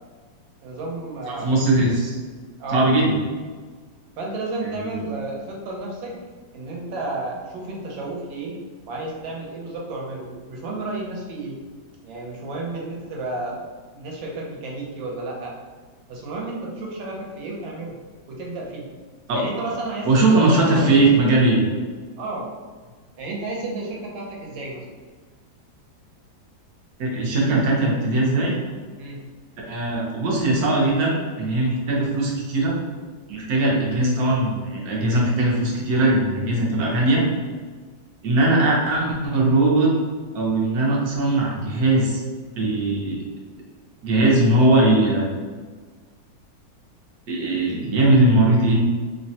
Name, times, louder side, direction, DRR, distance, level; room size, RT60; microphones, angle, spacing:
voice 1, 0.6-1.6 2.6-2.9 4.2-6.2 6.5-8.6 8.9-11.6 12.0-13.6 13.9-15.6 16.1-18.0 18.3-18.9 19.3-21.2 22.2-22.5 23.2-25.0 29.0-29.2, right 2 dB, 85° right, -2 dB, 1.4 m, -32 dB
voice 2, 1.3-2.2 2.7-3.2 4.6-5.0 19.3-19.4 20.0-21.6 27.0-28.6 29.7-32.8 33.3-37.2 38.2-39.9 40.3-42.2 42.5-43.2 44.0-45.3 47.3-48.8, right 2 dB, 65° right, -3 dB, 1.0 m, -19 dB
3.2 x 2.1 x 2.7 m, 1.5 s
omnidirectional pair, 2.1 m